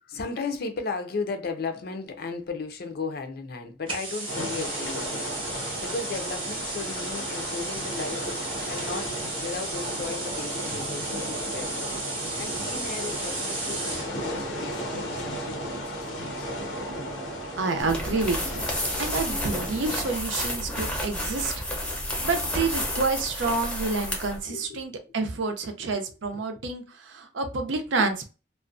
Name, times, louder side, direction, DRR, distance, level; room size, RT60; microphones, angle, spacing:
voice 1, 0.0-5.2 5.5-16.9 24.2-25.0 25.8-26.0 26.3-26.5 28.0-28.1, left 4 dB, 55° left, 0.5 m, -36 dB
sound 1, 3.9-14.1, right 2 dB, 30° right, 0.8 m, -34 dB
sound 2, 4.3-20.2, equal, 90° left, 0.7 m, -35 dB
voice 2, 17.6-18.6 19.0-21.5 22.2-28.2, right 3 dB, 85° right, 0.5 m, -28 dB
sound 3, 17.8-24.4, left 1 dB, 5° left, 0.6 m, -31 dB
2.4 x 2.1 x 2.4 m
head